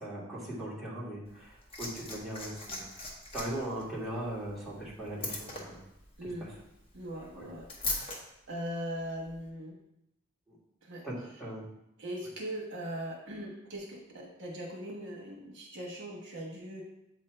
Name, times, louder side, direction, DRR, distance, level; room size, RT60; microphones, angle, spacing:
voice 1, 0.0-3.1 3.3-5.8 6.4-6.5 7.3-7.5 10.5-10.6 11.0-11.7, right 1 dB, ahead, -8 dB, 1.6 m, -39 dB
Liquid, 1.3-8.2 9.2-9.4, left 2 dB, 30° left, 1.1 m, -41 dB
voice 2, 6.2-6.5 6.9-8.2 8.5-9.7 10.8-11.0 12.0-16.8, equal, 60° right, -2 dB, 1.2 m, -40 dB
8.0 x 2.7 x 4.5 m, 0.86 s
head